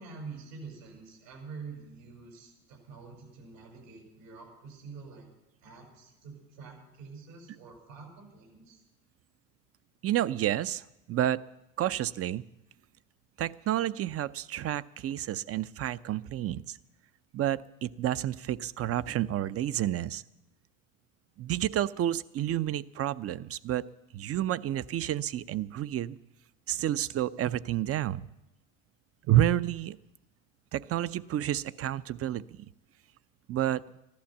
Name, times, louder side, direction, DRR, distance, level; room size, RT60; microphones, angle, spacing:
voice 1, 0.0-5.3 5.6-8.8, right 4 dB, 80° right, 1 dB, 6.7 m, -47 dB
voice 2, 10.0-10.8 11.1-11.4 11.8-12.4 13.4-16.8 17.3-20.2 21.4-23.8 24.1-26.2 26.7-28.3 29.3-30.0 30.7-32.7 33.5-33.8, right 12 dB, 35° right, 17 dB, 0.6 m, -30 dB
14.5 x 12.0 x 7.3 m, 0.94 s
hypercardioid pair, 85°, 40 cm